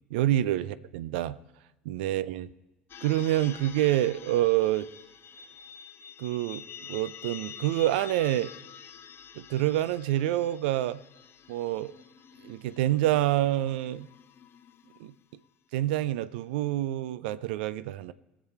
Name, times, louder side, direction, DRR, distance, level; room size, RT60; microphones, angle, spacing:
voice 1, 0.1-1.4 1.9-2.5 3.0-4.9 6.2-6.6 6.9-8.5 9.4-11.0 11.5-11.9 12.4-14.1 15.0-15.1 15.7-18.1, right 14 dB, 65° right, 0.5 m, -27 dB
sound 1, 2.9-15.4, left 8 dB, 40° left, 0.8 m, -48 dB
22.0 x 7.4 x 4.3 m
figure-of-eight pair, 60°, 6 cm